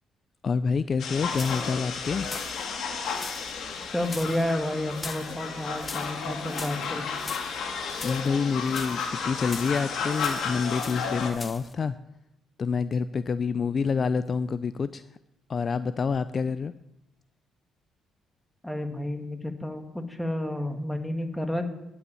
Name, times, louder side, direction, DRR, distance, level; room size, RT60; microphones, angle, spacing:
voice 1, 0.4-2.3 8.0-12.0 12.6-15.0 15.5-16.7, left 5 dB, 45° left, 14 dB, 0.4 m, -27 dB
sound 1, 1.0-11.3, left 5 dB, 65° left, 1.9 m, -33 dB
sound 2, 1.1-11.7, left 3 dB, 30° left, 0.9 m, -43 dB
voice 2, 3.9-7.1 18.6-21.6, left 1 dB, 5° left, 5 dB, 1.8 m, -30 dB
9.5 x 7.0 x 9.0 m, 0.88 s
cardioid pair, 80°, 0 cm